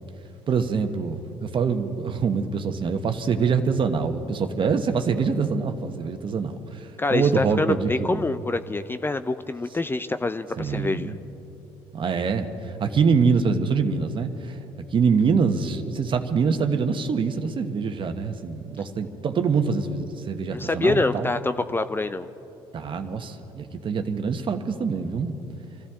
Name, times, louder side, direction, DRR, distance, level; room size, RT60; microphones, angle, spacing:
voice 1, 0.5-8.3 10.6-11.2 11.9-14.6 14.9-21.3 22.7-25.3, right 5 dB, 45° right, 7 dB, 1.2 m, -25 dB
voice 2, 7.0-11.1 20.5-22.3, left 2 dB, 20° left, 12 dB, 0.5 m, -26 dB
26.5 x 14.0 x 3.7 m, 3.0 s
supercardioid pair, 65°, 12 cm